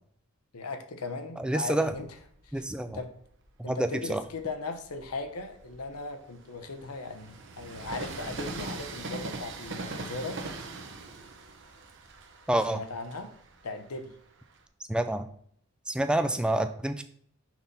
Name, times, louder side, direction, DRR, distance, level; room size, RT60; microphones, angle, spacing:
voice 1, 0.5-2.1 2.4-3.1 3.6-10.4 12.7-13.3 13.6-14.1, left 3 dB, 90° left, 7 dB, 0.9 m, -38 dB
voice 2, 1.4-1.9 2.5-3.0 3.6-4.2 12.5-12.8 14.9-15.3 15.9-17.0, right 1 dB, 5° right, 8 dB, 0.3 m, -28 dB
Train, 1.8-3.4 4.0-14.6, right 3 dB, 55° right, 0.8 m, -42 dB
6.0 x 4.2 x 5.3 m, 0.63 s
head